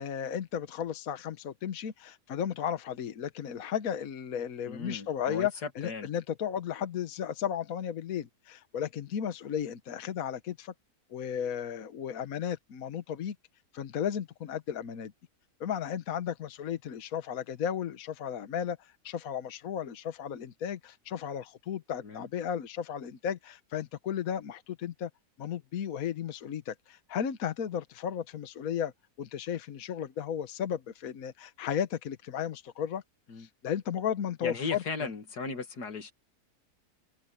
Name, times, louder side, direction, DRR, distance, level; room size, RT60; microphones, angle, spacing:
voice 1, 0.0-10.7 11.1-13.3 13.7-15.1 15.6-25.1 25.4-28.9 29.2-33.0 33.4-34.8, left 8 dB, 65° left, 1.4 m, -34 dB
voice 2, 4.7-5.5 5.8-6.1 22.0-22.3 33.3-33.5 34.4-36.1, left 4 dB, 90° left, 2.6 m, -36 dB
omnidirectional pair, 1.7 m